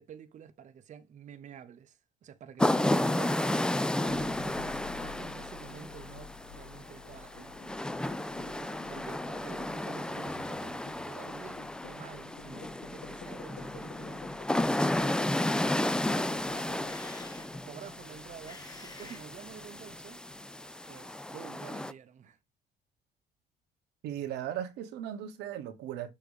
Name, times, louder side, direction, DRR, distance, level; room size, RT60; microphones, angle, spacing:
voice 1, 0.0-7.8 8.4-17.0 17.6-20.2 20.9-22.4, right 8 dB, 45° right, 0.7 m, -49 dB
sound 1, 2.6-21.9, left 1 dB, 5° left, 0.4 m, -33 dB
sound 2, 4.1-21.3, left 8 dB, 70° left, 1.4 m, -52 dB
sound 3, 16.4-20.0, left 4 dB, 20° left, 0.9 m, -52 dB
voice 2, 24.0-26.1, right 10 dB, 85° right, 1.2 m, -37 dB
6.8 x 3.0 x 4.9 m
cardioid pair, 110°, 17 cm